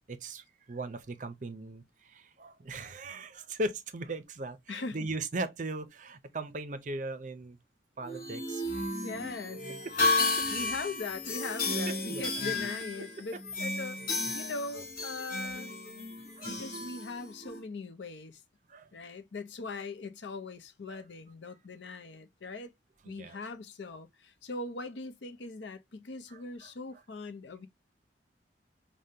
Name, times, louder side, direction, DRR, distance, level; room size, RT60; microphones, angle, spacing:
voice 1, 0.1-7.6 8.0-8.8 9.8-10.5 11.7-12.3 13.3-13.4 16.4-16.5 18.7-18.9 19.7-19.8 20.9-21.0 23.0-23.5 26.3-26.7, right 2 dB, 45° right, 0.5 m, -39 dB
voice 2, 4.7-5.1 9.0-9.7 10.5-14.0 14.3-15.7 16.4-18.4 18.9-22.7 23.0-27.7, left 3 dB, 85° left, 0.6 m, -40 dB
sound 1, 8.0-17.6, left 2 dB, 50° left, 1.0 m, -33 dB
5.0 x 2.1 x 2.7 m
head